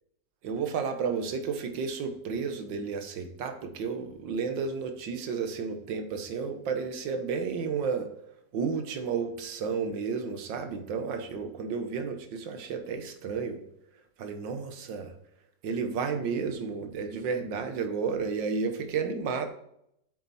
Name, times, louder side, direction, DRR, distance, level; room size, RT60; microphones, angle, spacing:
voice 1, 0.4-8.1 8.5-13.6 14.2-15.1 15.6-19.5, right 5 dB, 80° right, 7 dB, 1.8 m, -32 dB
8.7 x 6.9 x 4.2 m, 0.75 s
omnidirectional pair, 2.0 m